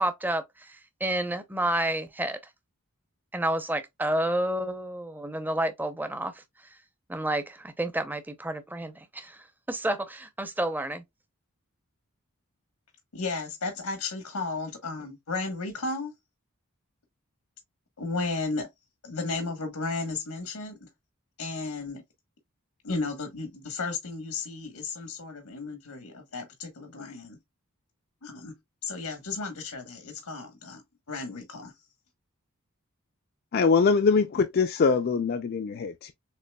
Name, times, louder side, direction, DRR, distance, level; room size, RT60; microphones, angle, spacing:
voice 1, 0.0-2.4 3.3-6.4 7.1-11.0, right 1 dB, 10° right, 0.5 m, -30 dB
voice 2, 13.1-16.1 18.0-18.7 19.0-20.9 21.4-22.0 22.8-27.4 28.2-28.5 28.8-30.8 31.1-31.7, left 3 dB, 90° left, 1.2 m, -34 dB
voice 3, 33.5-36.1, left 5 dB, 45° left, 0.3 m, -23 dB
6.7 x 3.0 x 2.2 m
head